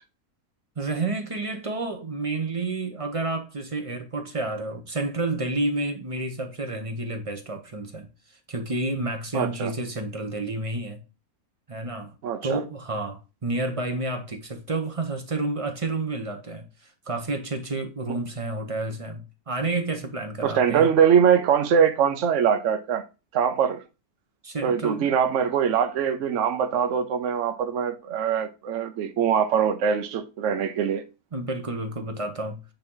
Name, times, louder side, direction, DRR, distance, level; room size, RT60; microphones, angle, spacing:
voice 1, 0.8-8.1 8.5-11.0 11.7-12.1 12.4-20.9 24.4-25.1 31.3-32.6, right 2 dB, 30° right, 0.7 m, -30 dB
voice 2, 9.3-9.7 12.2-12.6 20.4-23.0 23.3-23.8 24.6-31.0, right 7 dB, 60° right, 1.0 m, -22 dB
8.7 x 2.9 x 3.7 m
omnidirectional pair, 1.6 m